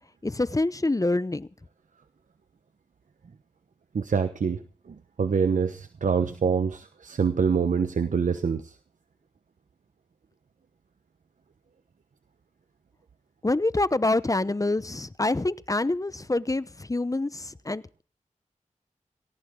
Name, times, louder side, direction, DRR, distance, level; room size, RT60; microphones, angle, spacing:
voice 1, 0.2-1.5 13.4-18.0, left 2 dB, 25° left, 17 dB, 0.8 m, -26 dB
voice 2, 3.9-8.8, right 6 dB, 80° right, 10 dB, 1.1 m, -26 dB
19.5 x 18.0 x 3.8 m, 0.41 s
wide cardioid pair, 60°, 13 cm